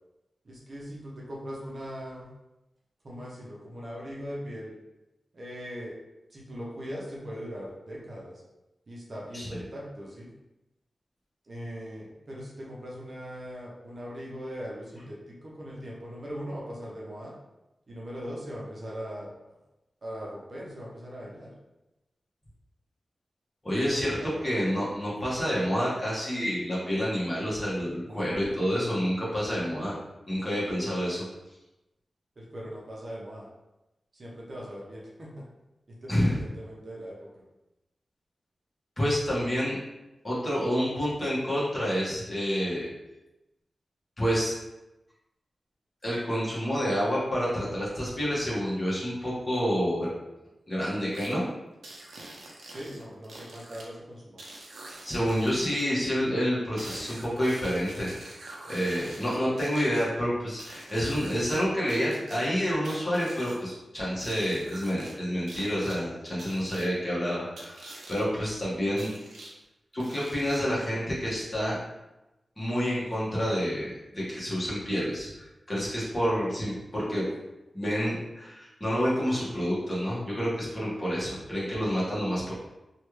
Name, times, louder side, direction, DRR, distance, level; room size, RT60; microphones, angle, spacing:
voice 1, 0.4-2.3 3.0-4.7 5.3-6.0 6.3-8.4 8.9-10.3 11.4-17.3 17.9-19.6 20.0-21.5 23.9-24.4 28.0-28.5 30.8-31.0 32.4-33.5 34.1-35.4 35.9-37.1 52.7-54.4, equal, 45° right, -5 dB, 0.7 m, -40 dB
voice 2, 23.6-24.2 24.4-29.9 30.3-31.2 36.1-36.4 39.0-39.8 40.2-42.9 44.2-44.6 46.0-50.1 50.7-51.4 55.0-58.1 58.7-69.1 69.4-69.5 69.9-71.8 72.6-77.2 77.7-82.5, equal, 25° left, -8 dB, 1.2 m, -28 dB
sound 1, 51.1-51.3 51.8-53.9 54.4-55.9 56.8-60.0 60.6-61.6 61.9-63.6 64.2-65.1 65.5-66.0 66.4-66.9 67.6-68.2 69.0-69.5 70.0-70.8, right 2 dB, 90° right, 0.6 m, -45 dB
3.2 x 2.3 x 3.1 m, 0.97 s
wide cardioid pair, 115°, 0 cm